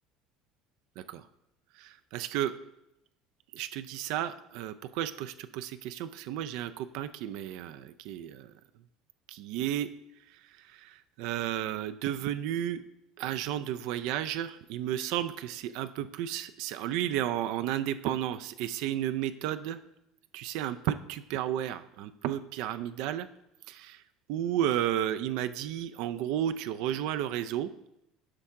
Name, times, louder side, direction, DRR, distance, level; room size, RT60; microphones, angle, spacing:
voice 1, 1.8-2.6 3.5-8.5 9.3-9.9 10.3-12.8 13.2-19.8 20.3-23.3 23.7-24.0 24.3-27.7, right 11 dB, 70° right, 11 dB, 0.4 m, -33 dB
9.8 x 5.7 x 3.6 m, 0.84 s
supercardioid pair, 125°, 0 cm